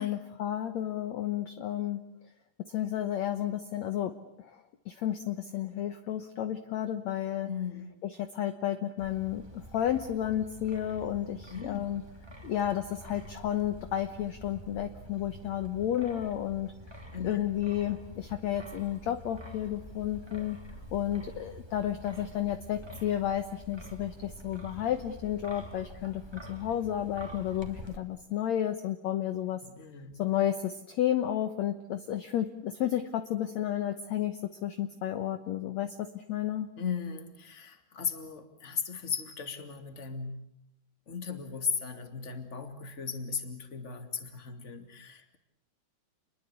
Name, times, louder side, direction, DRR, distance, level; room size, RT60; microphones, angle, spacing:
voice 1, 0.0-2.0 2.7-4.5 4.9-7.5 8.0-12.0 12.4-16.7 17.2-20.6 20.9-29.6 30.2-36.7, left 11 dB, 65° left, 10 dB, 2.0 m, -32 dB
voice 2, 7.4-7.9 11.5-11.9 17.1-17.5 29.6-30.2 36.8-40.4 41.1-45.4, left 6 dB, 25° left, 8 dB, 2.3 m, -37 dB
Wind, 9.0-28.0, right 1 dB, 10° right, 2.4 m, -47 dB
29.0 x 22.0 x 8.3 m, 0.80 s
omnidirectional pair, 4.1 m